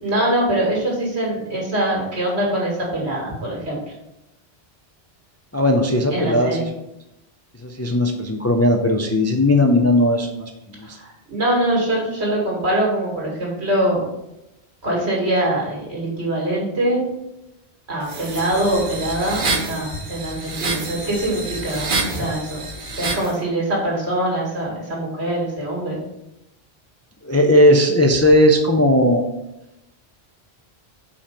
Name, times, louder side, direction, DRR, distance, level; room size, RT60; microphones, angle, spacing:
voice 1, 0.0-3.8 6.1-6.7 10.8-14.0 14.8-17.0 17.9-22.6 22.9-26.0, right 1 dB, 75° right, -3 dB, 2.4 m, -23 dB
voice 2, 5.5-6.7 7.6-10.5 27.2-29.3, left 1 dB, 25° left, 3 dB, 0.4 m, -17 dB
sound 1, 18.0-23.3, right 3 dB, 50° right, 1.1 m, -28 dB
5.6 x 4.2 x 5.2 m, 0.89 s
omnidirectional pair, 1.1 m